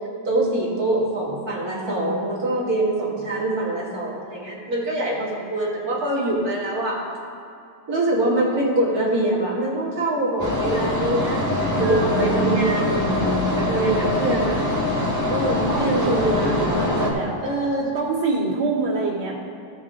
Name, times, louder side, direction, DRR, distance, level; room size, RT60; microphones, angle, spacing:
voice 1, 0.2-7.0 7.9-11.4 11.8-13.1 13.4-14.6 15.3-16.7 17.4-17.9, right 1 dB, 50° right, -6 dB, 2.7 m, -24 dB
sound 1, 10.4-17.1, left 1 dB, 10° left, 1.5 m, -23 dB
voice 2, 11.8-12.6 15.4-17.3 17.9-19.4, right 3 dB, 80° right, -5 dB, 3.0 m, -27 dB
16.0 x 6.4 x 3.7 m, 2.6 s
omnidirectional pair, 2.1 m